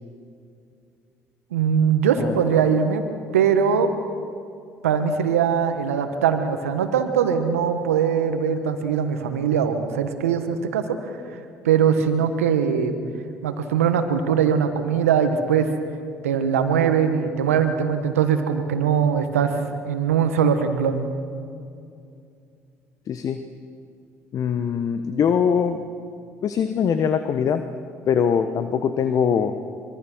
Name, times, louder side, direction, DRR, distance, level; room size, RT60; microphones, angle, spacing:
voice 1, 1.5-3.0 3.3-3.9 4.8-11.0 11.6-12.9 13.4-15.7 16.2-19.5 19.8-21.1, right 7 dB, 90° right, 8 dB, 1.4 m, -21 dB
voice 2, 2.2-2.5 23.1-23.4 24.3-25.8 26.4-27.6 28.1-29.5, left 7 dB, 50° left, 9 dB, 1.2 m, -22 dB
25.0 x 22.0 x 6.3 m, 2.4 s
hypercardioid pair, 60°, 7 cm